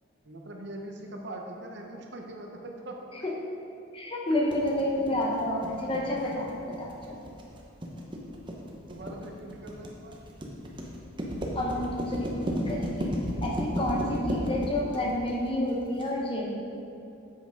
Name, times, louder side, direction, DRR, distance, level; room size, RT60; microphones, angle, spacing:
voice 1, 0.2-3.4 5.0-5.2 8.7-10.2, right 1 dB, 55° right, 1 dB, 0.9 m, -42 dB
voice 2, 3.9-7.2 11.5-13.1 13.4-16.6, left 1 dB, 25° left, -1 dB, 0.7 m, -30 dB
sound 1, 4.5-16.1, equal, 25° right, 0.8 m, -33 dB
7.7 x 5.9 x 5.1 m, 2.7 s
head